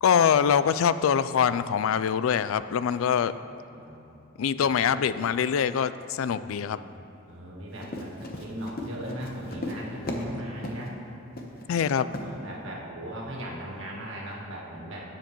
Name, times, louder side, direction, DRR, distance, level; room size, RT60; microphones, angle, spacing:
voice 1, 0.0-3.3 4.4-6.8 11.7-12.1, left 7 dB, 90° left, 14 dB, 0.3 m, -24 dB
voice 2, 3.1-4.2 4.5-5.1 6.3-6.9 7.3-11.0 11.7-15.0, equal, 75° right, -3 dB, 1.8 m, -39 dB
Run, 7.7-10.3 10.6-10.9 11.4-11.6 12.1-12.3, left 1 dB, 45° left, 0.9 m, -36 dB
16.5 x 7.6 x 3.1 m, 2.9 s
head